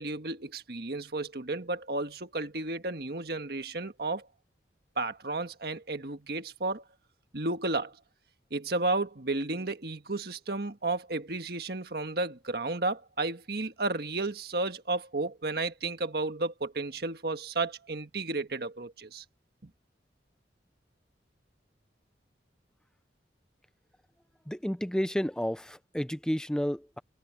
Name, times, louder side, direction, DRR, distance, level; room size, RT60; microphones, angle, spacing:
voice 1, 0.0-4.3 5.0-6.8 7.3-8.0 8.5-19.2, right 2 dB, 60° right, 1.6 m, -32 dB
voice 2, 24.5-27.0, equal, 5° left, 0.6 m, -31 dB
head